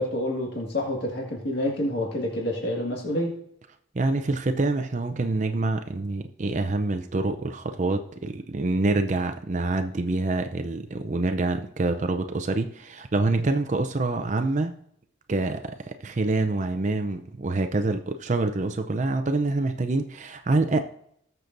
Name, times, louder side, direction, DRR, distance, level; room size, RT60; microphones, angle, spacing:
voice 1, 0.0-3.3, left 1 dB, 55° left, -2 dB, 1.9 m, -28 dB
voice 2, 3.9-14.7 15.3-20.8, right 2 dB, 35° right, 7 dB, 0.5 m, -26 dB
20.0 x 6.8 x 2.6 m, 0.71 s
head